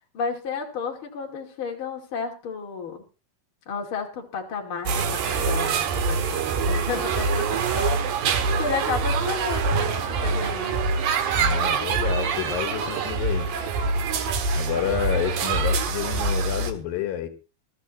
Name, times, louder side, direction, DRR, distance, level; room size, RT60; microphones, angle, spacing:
voice 1, 0.1-3.0 3.7-8.0 8.6-10.8, left 5 dB, 40° left, 1 dB, 2.8 m, -32 dB
sound 1, 4.9-16.7, right 4 dB, 80° right, 3.2 m, -25 dB
voice 2, 11.4-13.5 14.5-17.3, left 10 dB, 85° left, 8 dB, 3.1 m, -29 dB
22.0 x 13.5 x 2.9 m, 0.31 s
omnidirectional pair, 4.0 m